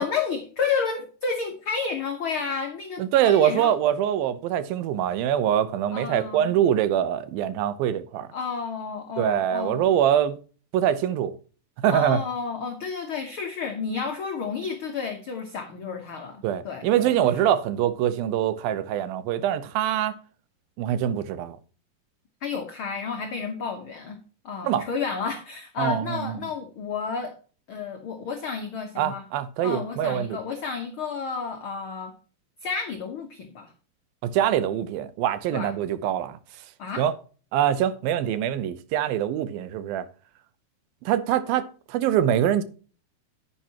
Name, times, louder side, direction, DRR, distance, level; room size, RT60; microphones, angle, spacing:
voice 1, 0.0-3.7 5.9-6.5 8.3-9.8 11.9-17.1 17.4-17.5 22.4-24.2 24.4-27.3 27.7-29.2 29.6-32.1 32.6-33.7 35.5-35.7 36.8-37.0, left 5 dB, 85° left, 1.1 m, -31 dB
voice 2, 3.0-8.3 9.2-10.4 10.7-11.4 11.8-12.2 16.4-20.2 20.8-21.6 24.6-24.9 25.8-26.5 29.0-30.4 34.2-36.4 37.0-37.1 37.5-40.1 41.1-42.6, right 10 dB, 90° right, 2.6 m, -24 dB
10.0 x 9.2 x 2.9 m
omnidirectional pair, 4.1 m